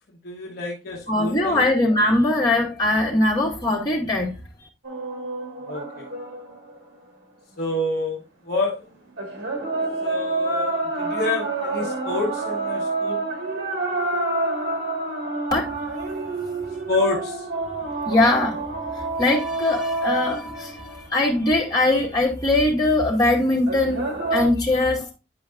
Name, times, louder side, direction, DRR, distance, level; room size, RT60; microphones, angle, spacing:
voice 1, 0.1-1.6 5.7-6.0 7.6-8.2 8.4-8.8 10.0-13.2 16.9-17.5, left 2 dB, 50° left, 1.1 m, -28 dB
voice 2, 1.1-4.4 15.5-15.7 18.1-18.6 18.9-25.1, left 2 dB, 20° left, 2.3 m, -21 dB
sound 1, 4.8-7.4 9.2-21.5 23.7-24.5, right 2 dB, 80° right, 1.7 m, -28 dB
9.8 x 5.0 x 2.5 m
head